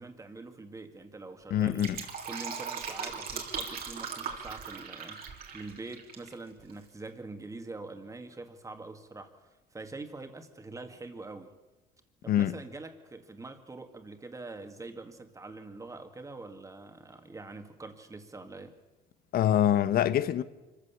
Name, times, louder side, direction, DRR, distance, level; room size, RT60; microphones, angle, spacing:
voice 1, 0.0-1.9 2.2-11.5 12.2-18.8, right 3 dB, 20° right, 2.2 m, -44 dB
voice 2, 1.5-2.0 12.3-12.6 19.3-20.4, left 11 dB, 65° left, 1.1 m, -25 dB
Fill (with liquid), 1.5-6.3 6.6-6.7, right 6 dB, 60° right, 3.3 m, -39 dB
25.0 x 15.0 x 7.2 m
cardioid pair, 110°, 17 cm